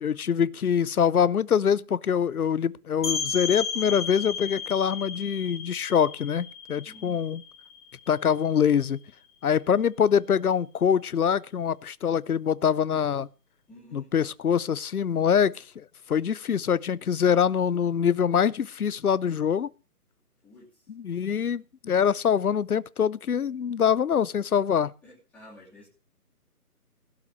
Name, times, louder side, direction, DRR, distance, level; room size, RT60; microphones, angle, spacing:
voice 1, 0.0-7.4 8.1-9.0 9.4-13.3 13.9-19.7 20.9-24.9, left 8 dB, 65° left, 0.8 m, -24 dB
sound 1, 3.0-8.5, left 6 dB, 30° left, 2.1 m, -34 dB
voice 2, 6.8-7.2 13.7-14.1 20.4-20.9 25.0-25.9, left 1 dB, 5° left, 3.0 m, -51 dB
16.5 x 5.8 x 7.6 m
figure-of-eight pair, 165°, 47 cm